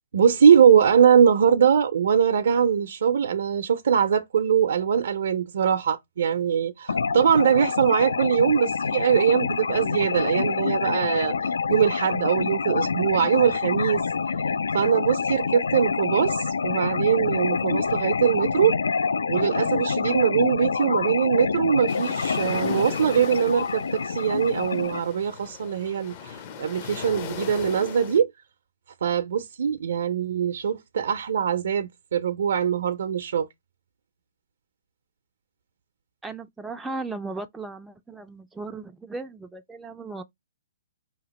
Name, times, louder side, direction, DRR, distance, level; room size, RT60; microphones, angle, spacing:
voice 1, 0.1-11.3 11.7-14.0 14.7-18.8 19.3-28.3 29.0-33.5, right 7 dB, 70° right, 0.5 m, -22 dB
sound 1, 6.9-25.0, left 5 dB, 85° left, 0.3 m, -27 dB
sound 2, 21.9-28.2, left 8 dB, 40° left, 0.6 m, -39 dB
voice 2, 36.2-40.2, right 3 dB, 5° right, 0.3 m, -36 dB
4.8 x 2.9 x 2.9 m
hypercardioid pair, 145°, 0 cm